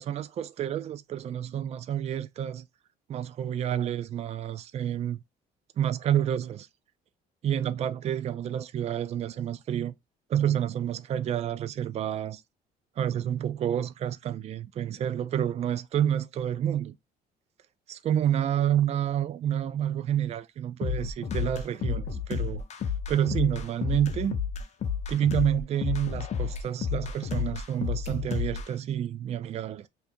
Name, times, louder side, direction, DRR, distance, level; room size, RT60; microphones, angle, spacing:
voice 1, 0.0-2.7 3.1-5.2 5.8-6.7 7.4-9.9 10.3-12.4 13.0-16.9 17.9-22.6 23.1-24.4 25.1-29.9, right 10 dB, 40° right, 0.4 m, -29 dB
sound 1, 20.8-28.7, left 7 dB, 40° left, 0.6 m, -31 dB
2.7 x 2.6 x 4.2 m
cardioid pair, 110°, 17 cm